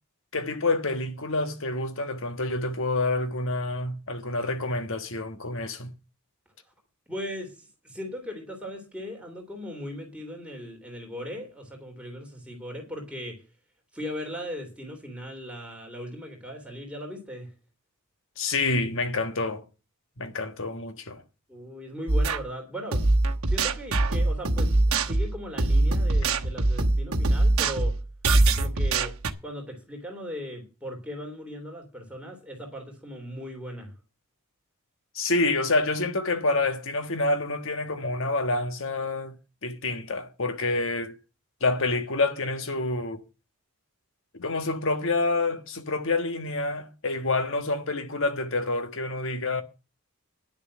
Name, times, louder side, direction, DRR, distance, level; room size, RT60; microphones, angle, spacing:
voice 1, 0.3-5.9 18.4-19.6 20.2-21.2 35.1-39.4 39.6-41.2 41.6-43.2 44.3-49.6, left 2 dB, 60° left, 1.3 m, -27 dB
voice 2, 7.1-13.4 13.9-17.5 21.5-23.0 23.5-27.9 28.5-29.1 29.4-33.9, equal, 5° right, 3.2 m, -38 dB
sound 1, 22.1-22.4 22.9-29.3, right 2 dB, 70° right, 1.1 m, -23 dB
10.5 x 6.9 x 7.4 m
head